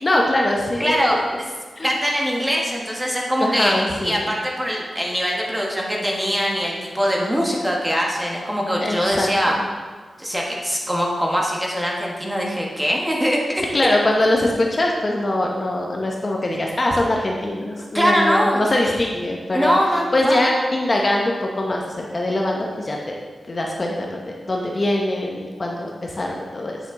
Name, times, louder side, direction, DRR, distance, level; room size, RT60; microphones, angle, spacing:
voice 1, 0.0-1.0 1.8-1.9 3.4-4.3 8.8-9.5 13.7-19.8 20.1-23.2 23.5-26.8, left 1 dB, 30° left, 0 dB, 0.8 m, -22 dB
voice 2, 0.8-1.2 1.8-9.6 10.2-13.4 17.9-18.6 19.5-20.4, equal, 10° right, -2 dB, 1.3 m, -22 dB
8.5 x 7.0 x 3.8 m, 1.4 s
wide cardioid pair, 145°, 0 cm